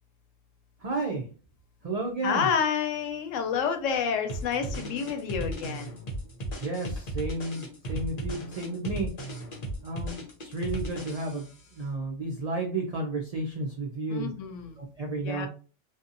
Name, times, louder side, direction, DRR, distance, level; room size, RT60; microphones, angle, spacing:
voice 1, 0.8-1.2 1.8-2.5 6.6-9.1 9.8-14.3 14.8-15.5, right 2 dB, 70° right, 0 dB, 0.3 m, -32 dB
voice 2, 2.2-6.0 14.1-14.8 15.2-15.5, left 7 dB, 80° left, 6 dB, 0.9 m, -29 dB
sound 1, 4.3-11.6, right 1 dB, 45° left, 0.6 m, -36 dB
2.7 x 2.3 x 2.5 m, 0.37 s
omnidirectional pair, 1.3 m